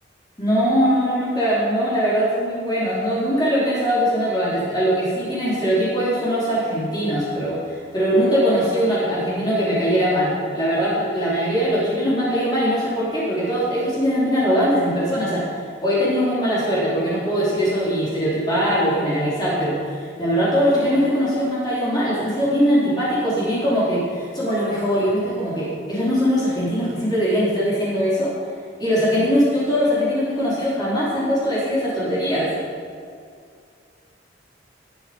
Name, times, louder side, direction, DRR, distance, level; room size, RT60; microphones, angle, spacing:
voice 1, 0.4-15.4 15.8-28.3 28.8-32.5, equal, 20° left, -9 dB, 4.1 m, -21 dB
20.0 x 8.6 x 5.4 m, 2.2 s
head